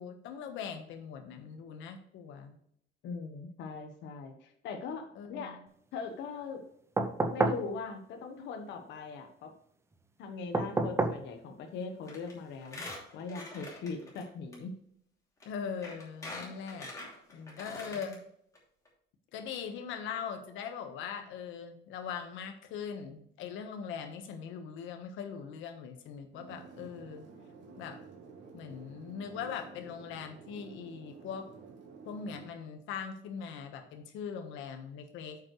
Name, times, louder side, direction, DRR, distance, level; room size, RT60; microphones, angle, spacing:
voice 1, 0.0-2.6 5.1-5.5 15.4-16.9 17.3-18.2 19.3-27.3 27.8-28.0 28.5-31.5 32.0-35.4, left 7 dB, 90° left, 5 dB, 1.4 m, -41 dB
voice 2, 3.0-5.6 5.9-6.6 7.3-9.5 10.2-12.9 13.1-14.7 16.4-16.5 17.3-17.7, left 4 dB, 70° left, 4 dB, 1.3 m, -41 dB
sound 1, 7.0-7.7 10.5-11.2 12.9-13.0, right 2 dB, 15° right, 0.6 m, -29 dB
Squeak, 12.1-12.3 12.6-14.2 14.5-14.6 15.4-15.5 15.8-18.1 18.6-18.7 18.9-19.0, left 2 dB, 15° left, 2.9 m, -44 dB
sound 2, 26.3-32.4, right 4 dB, 70° right, 3.1 m, -51 dB
9.1 x 7.5 x 3.2 m, 0.68 s
cardioid pair, 175°, 20 cm